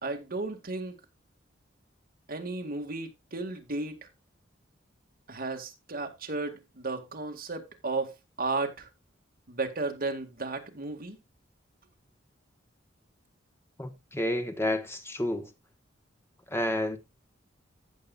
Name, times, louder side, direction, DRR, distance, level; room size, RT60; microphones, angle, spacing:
voice 1, 0.0-1.0 2.3-4.1 5.3-8.9 9.5-11.2, right 3 dB, 50° right, 2.0 m, -34 dB
voice 2, 13.8-15.4 16.5-17.0, left 1 dB, 15° left, 1.3 m, -30 dB
15.5 x 6.9 x 2.5 m
head